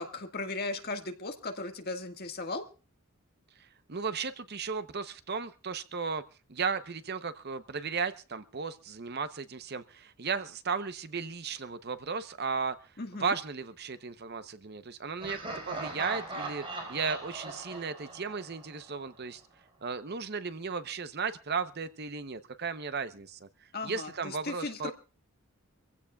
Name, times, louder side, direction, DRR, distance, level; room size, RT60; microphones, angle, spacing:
voice 1, 0.0-2.7 13.0-13.4 23.7-24.9, left 3 dB, 45° left, 5 dB, 1.7 m, -37 dB
voice 2, 3.9-6.2 6.5-12.8 13.2-19.4 19.8-23.5 23.8-24.9, right 5 dB, 45° right, 11 dB, 0.8 m, -35 dB
Laughter, 15.2-19.1, right 2 dB, 25° right, 4.8 m, -40 dB
26.0 x 15.5 x 2.3 m, 0.35 s
head